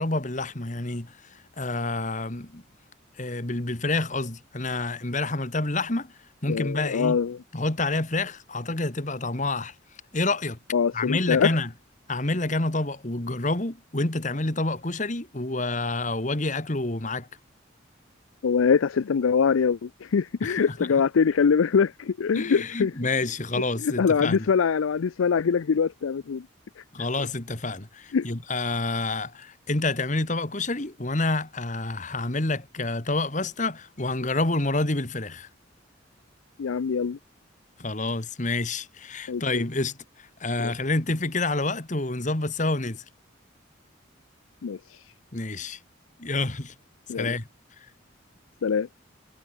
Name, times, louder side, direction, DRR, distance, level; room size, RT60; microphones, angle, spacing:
voice 1, 0.0-2.6 3.2-6.1 6.4-7.2 7.5-9.7 10.1-10.6 10.9-11.7 12.1-17.3 20.4-20.9 22.3-24.5 26.9-35.5 37.8-40.0 40.4-43.0 45.3-45.8 46.2-46.7 47.2-47.5, left 2 dB, 40° left, 1.8 m, -28 dB
voice 2, 6.5-7.4 10.7-11.5 18.4-22.9 23.8-26.5 28.1-28.3 36.6-37.2 39.3-39.6 40.6-40.7 44.6-45.0 47.1-47.3 48.6-48.9, left 6 dB, 90° left, 0.5 m, -23 dB
head